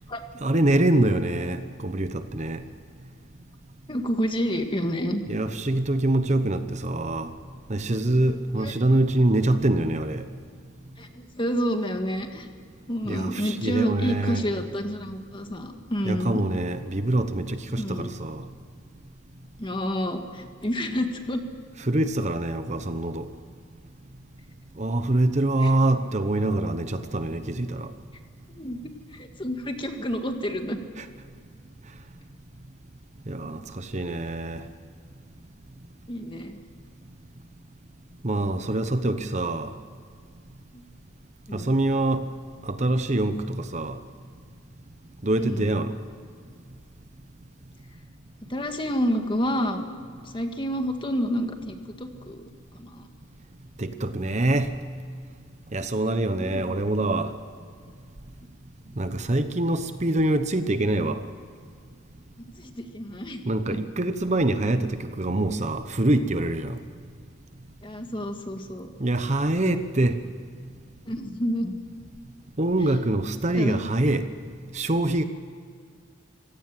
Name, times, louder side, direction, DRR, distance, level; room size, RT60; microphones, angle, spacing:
voice 1, 0.4-2.6 5.3-7.3 7.7-10.3 13.0-14.4 16.0-18.4 21.8-23.3 24.8-27.9 31.0-31.1 33.3-34.6 38.2-39.7 41.5-42.3 42.6-44.0 45.2-45.9 53.8-54.7 55.7-57.3 59.0-61.2 63.5-66.8 69.0-70.2 72.6-74.3 74.7-75.2, right 1 dB, 35° right, 0.9 m, -25 dB
voice 2, 3.9-5.2 8.6-8.7 11.0-12.5 12.9-16.4 17.8-18.1 19.6-21.4 25.6-25.7 28.6-30.8 36.1-36.6 40.7-40.8 41.5-41.7 45.4-45.6 48.5-49.9 50.2-53.1 56.5-56.8 58.9-59.0 62.5-63.8 67.8-68.9 71.1-71.7 73.5-73.8, equal, 25° left, 1.8 m, -29 dB
25.5 x 17.0 x 7.6 m
head